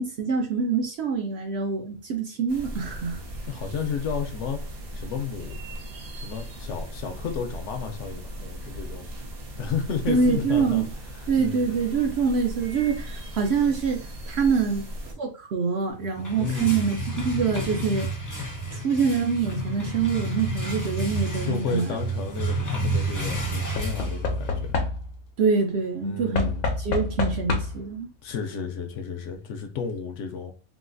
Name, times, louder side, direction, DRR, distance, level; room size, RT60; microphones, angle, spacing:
voice 1, 0.0-3.2 10.1-10.9 11.3-18.1 18.7-22.0 25.4-26.5 26.8-28.1, right 5 dB, 65° right, 0.7 m, -25 dB
sound 1, 2.5-15.1, right 1 dB, 80° right, 1.3 m, -37 dB
voice 2, 3.5-4.6 4.9-5.6 6.1-9.1 9.6-10.8 11.1-11.8 16.4-16.8 21.4-24.7 26.0-26.7 28.2-30.5, left 6 dB, 65° left, 0.8 m, -32 dB
sound 2, 16.0-24.7, right 2 dB, 25° left, 0.4 m, -30 dB
Knock / Wood, 21.6-22.0 23.8-25.3 26.3-27.9 29.0-29.1 29.3-29.4, left 3 dB, 85° left, 1.1 m, -28 dB
3.8 x 2.4 x 2.5 m
omnidirectional pair, 1.5 m